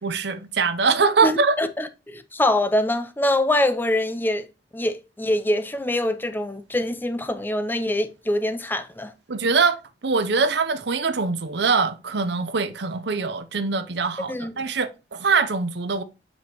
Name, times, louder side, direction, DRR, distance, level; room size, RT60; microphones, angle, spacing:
voice 1, 0.0-1.6 9.3-9.8 10.0-16.0, right 4 dB, 70° right, 0.7 m, -23 dB
voice 2, 1.2-4.5 4.7-9.1 14.3-14.5, left 1 dB, 10° left, 0.6 m, -24 dB
7.3 x 5.1 x 3.0 m
head